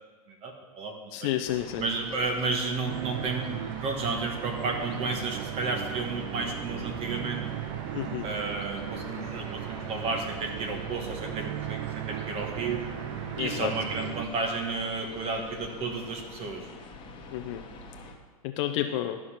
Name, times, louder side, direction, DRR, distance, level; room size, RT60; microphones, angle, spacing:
voice 1, 0.3-1.3 1.8-7.4 8.2-12.8 13.4-16.7, right 3 dB, 30° right, 3 dB, 1.3 m, -32 dB
voice 2, 1.1-1.8 7.9-8.3 13.4-13.7 17.3-17.6 18.4-19.2, left 12 dB, 50° left, 6 dB, 0.6 m, -30 dB
sound 1, 1.4-18.1, left 4 dB, 25° left, 1.3 m, -46 dB
sound 2, 2.9-14.3, right 13 dB, 50° right, 0.5 m, -37 dB
sound 3, 8.7-14.1, right 2 dB, 85° right, 1.8 m, -51 dB
12.0 x 4.9 x 5.7 m, 1.4 s
hypercardioid pair, 130°, 19 cm